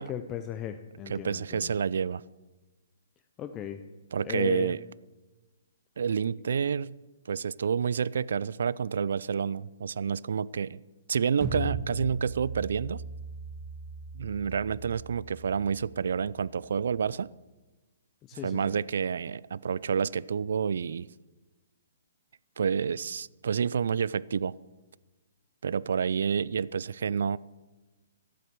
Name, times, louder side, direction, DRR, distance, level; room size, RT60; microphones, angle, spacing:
voice 1, 0.0-1.7 3.4-3.8 4.2-4.7 18.2-18.8, left 10 dB, 20° left, 8 dB, 0.6 m, -37 dB
voice 2, 1.1-2.2 4.1-4.8 6.0-7.0 7.3-10.8 11.1-13.0 14.1-17.3 18.4-21.1 22.6-24.5 25.6-27.4, right 6 dB, 70° right, 22 dB, 0.3 m, -29 dB
sound 1, 11.4-16.4, right 1 dB, 35° right, 1.8 m, -38 dB
13.0 x 7.7 x 6.7 m, 1.2 s
hypercardioid pair, 140°, 0 cm